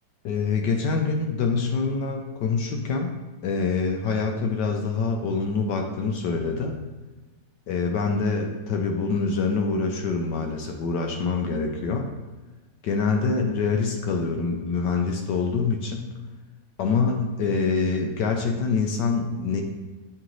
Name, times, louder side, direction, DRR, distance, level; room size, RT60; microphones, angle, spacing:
voice 1, 0.2-3.1 3.4-6.7 7.7-12.1 12.8-16.1 16.8-19.6, left 4 dB, 75° left, 3 dB, 1.2 m, -25 dB
8.6 x 3.8 x 3.1 m, 1.2 s
omnidirectional pair, 2.0 m